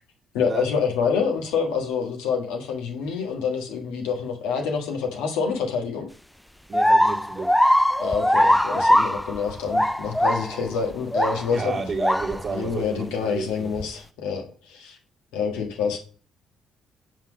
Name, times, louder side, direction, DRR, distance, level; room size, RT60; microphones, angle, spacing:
voice 1, 0.3-6.1 8.0-11.8 12.5-15.0 15.3-16.0, left 6 dB, 90° left, 1.5 m, -27 dB
sound 1, 6.7-11.5 11.9-12.7 13.8-13.9, equal, 5° left, 0.3 m, -21 dB
voice 2, 6.7-7.6 11.5-13.7, right 4 dB, 35° right, 1.4 m, -31 dB
7.1 x 4.1 x 6.1 m
supercardioid pair, 70°, 0 cm